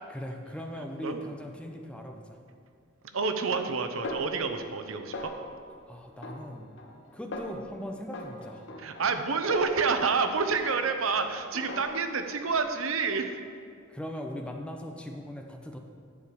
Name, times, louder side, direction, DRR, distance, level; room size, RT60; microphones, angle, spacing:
voice 1, 0.1-2.4 5.9-6.7 7.1-8.6 13.9-15.8, equal, 5° left, 2 dB, 0.7 m, -39 dB
voice 2, 0.8-1.2 3.1-5.3 8.8-13.4, right 4 dB, 80° right, 7 dB, 0.7 m, -28 dB
Snare drum, 4.0-4.9 5.1-5.7 6.2-7.0 7.3-7.7 8.1-10.2 10.6-11.1 11.5-12.2, left 1 dB, 65° left, 1.0 m, -40 dB
11.0 x 4.8 x 6.8 m, 2.2 s
head